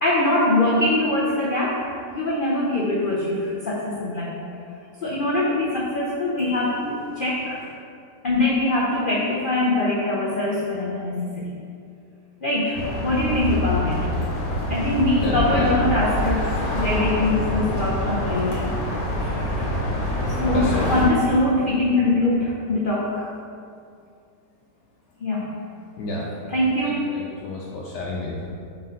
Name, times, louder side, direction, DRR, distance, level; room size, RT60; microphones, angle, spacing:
voice 1, 0.0-1.9 2.1-4.4 5.0-7.6 8.2-11.5 12.4-14.1 14.7-18.8 19.2-19.6 20.3-23.3 25.2-25.5 26.5-27.0, left 1 dB, 90° left, -5 dB, 0.4 m, -23 dB
voice 2, 6.4-6.8 7.1-7.7 14.2-15.9 20.0-21.0 24.0-24.1 26.0-26.5 26.8-28.5, left 2 dB, 70° left, -4 dB, 1.2 m, -33 dB
sound 1, 12.7-21.1, left 1 dB, 55° left, 1.6 m, -25 dB
4.6 x 3.8 x 5.5 m, 2.3 s
omnidirectional pair, 1.9 m